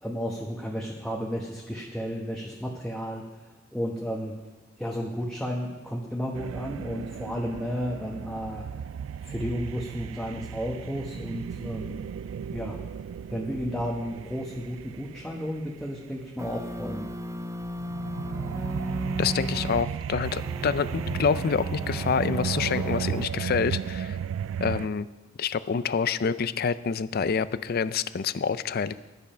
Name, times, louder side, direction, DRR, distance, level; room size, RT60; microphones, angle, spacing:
voice 1, 0.0-3.2 3.7-4.3 4.8-8.6 9.2-12.0 12.5-12.8 13.3-17.1, equal, 5° left, -2 dB, 1.0 m, -33 dB
sound 1, 6.3-16.2 17.8-24.9, right 7 dB, 85° right, 0.3 m, -35 dB
sound 2, 16.4-19.9 20.2-23.2, right 1 dB, 15° right, 0.6 m, -35 dB
voice 2, 19.2-24.2 24.6-25.1 25.4-29.0, left 6 dB, 50° left, 15 dB, 0.4 m, -27 dB
11.0 x 10.5 x 5.6 m, 1.2 s
head